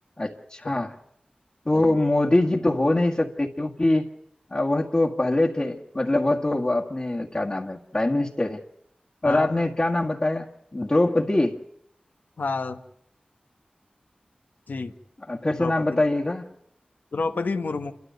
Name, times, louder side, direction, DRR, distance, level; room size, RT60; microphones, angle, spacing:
voice 1, 0.2-1.0 1.7-4.1 4.5-8.6 9.2-11.6 15.3-16.5, left 2 dB, 35° left, -3 dB, 1.7 m, -23 dB
voice 2, 12.4-12.8 14.7-14.9 15.6-16.0 17.1-17.9, left 4 dB, 90° left, 8 dB, 1.4 m, -29 dB
28.5 x 13.0 x 9.3 m, 0.73 s
wide cardioid pair, 65°, 3 cm